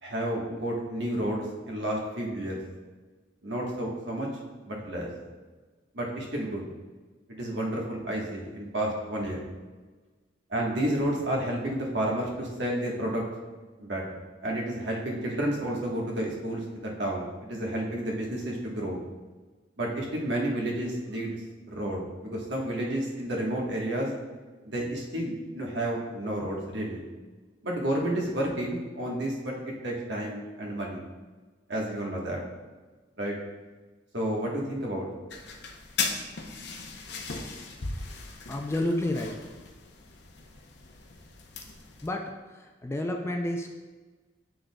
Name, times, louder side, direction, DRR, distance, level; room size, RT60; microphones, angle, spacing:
voice 1, 0.0-2.6 3.4-4.3 4.6-5.1 5.9-6.6 7.3-9.4 10.5-13.2 13.8-14.0 14.4-19.0 19.8-21.4 21.7-24.1 24.6-27.0 27.6-31.0 31.7-32.4 33.2-33.3 34.1-35.1, right 1 dB, 65° right, -2 dB, 1.3 m, -31 dB
sound 1, 35.3-42.1, left 4 dB, 60° left, 0.7 m, -37 dB
voice 2, 38.5-39.3 42.0-43.7, left 1 dB, 15° left, 3 dB, 0.4 m, -30 dB
7.9 x 6.2 x 2.3 m, 1.3 s
head